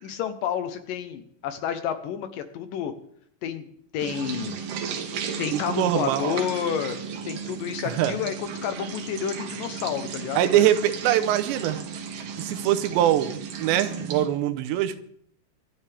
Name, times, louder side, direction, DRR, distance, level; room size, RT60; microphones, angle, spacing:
voice 1, 0.0-2.9 3.4-3.7 3.9-4.6 5.4-7.0 7.3-10.7, left 9 dB, 80° left, 9 dB, 2.0 m, -30 dB
sound 1, 4.0-14.3, right 6 dB, 65° right, 2.7 m, -35 dB
voice 2, 5.7-6.4 7.9-8.2 10.4-11.8 12.4-15.0, right 12 dB, 85° right, 10 dB, 3.1 m, -23 dB
25.0 x 10.5 x 3.4 m, 0.64 s
omnidirectional pair, 5.0 m